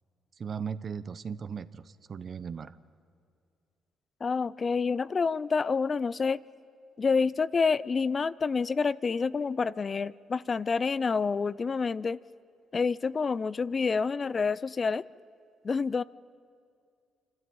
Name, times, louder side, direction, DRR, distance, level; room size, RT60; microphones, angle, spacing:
voice 1, 0.4-2.8, right 6 dB, 50° right, 14 dB, 0.8 m, -37 dB
voice 2, 4.2-6.4 7.0-12.2 12.7-15.0 15.6-16.0, left 5 dB, 40° left, 18 dB, 0.4 m, -28 dB
26.0 x 13.0 x 8.7 m, 2.4 s
supercardioid pair, 65°, 0 cm